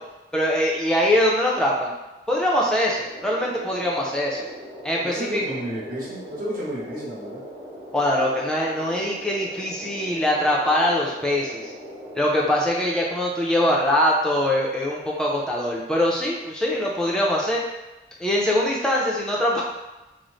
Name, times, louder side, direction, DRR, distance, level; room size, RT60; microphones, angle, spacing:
voice 1, 0.3-1.9 2.3-4.5 4.8-5.4 7.9-11.6 12.2-17.6 18.2-19.6, left 1 dB, 5° left, -4 dB, 0.4 m, -22 dB
sound 1, 3.0-13.1, equal, 25° right, 0.9 m, -40 dB
voice 2, 5.0-7.4, equal, 50° right, -6 dB, 1.0 m, -31 dB
3.1 x 2.0 x 3.8 m, 1.0 s
head